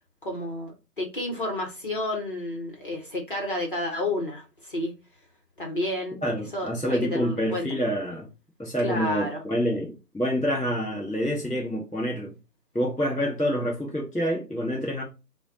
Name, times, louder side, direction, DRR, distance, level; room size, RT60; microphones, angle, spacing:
voice 1, 0.2-4.9 5.6-6.2 6.5-7.7 8.8-9.4, left 1 dB, 35° left, 0.9 m, -31 dB
voice 2, 6.2-8.3 8.6-12.3 12.7-15.0, equal, ahead, 0.9 m, -27 dB
5.4 x 2.3 x 4.0 m
figure-of-eight pair, 160°, 48 cm